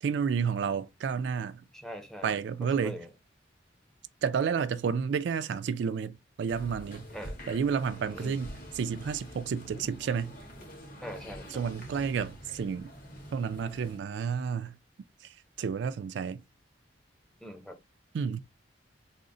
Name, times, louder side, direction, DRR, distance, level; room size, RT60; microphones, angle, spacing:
voice 1, 0.0-1.6 2.2-3.0 4.2-7.1 7.5-10.3 11.5-12.9 13.3-14.8 15.2-16.4 18.1-18.4, right 6 dB, 70° right, 0.3 m, -31 dB
voice 2, 1.7-2.3 2.6-3.1 7.1-7.4 8.1-8.3 11.0-11.7 17.4-17.8, equal, 5° left, 0.6 m, -42 dB
sound 1, 6.5-14.0, equal, 50° left, 1.4 m, -46 dB
3.7 x 2.0 x 3.8 m
head